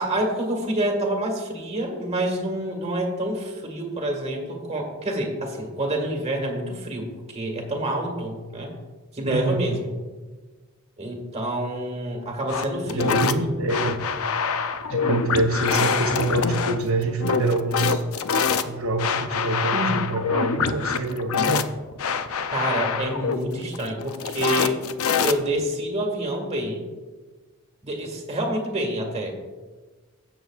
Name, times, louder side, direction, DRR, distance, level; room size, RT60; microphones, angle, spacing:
voice 1, 0.0-8.7 9.1-9.9 11.0-13.5 19.7-20.0 22.5-24.8 25.2-26.8 27.8-29.3, right 1 dB, 30° right, 1 dB, 1.7 m, -27 dB
voice 2, 9.2-9.7 12.9-14.1 14.9-18.0 18.7-21.7, right 2 dB, 75° right, 1 dB, 0.7 m, -26 dB
sound 1, 12.5-25.7, left 6 dB, 90° left, 0.5 m, -25 dB
16.0 x 7.0 x 2.4 m, 1.3 s
head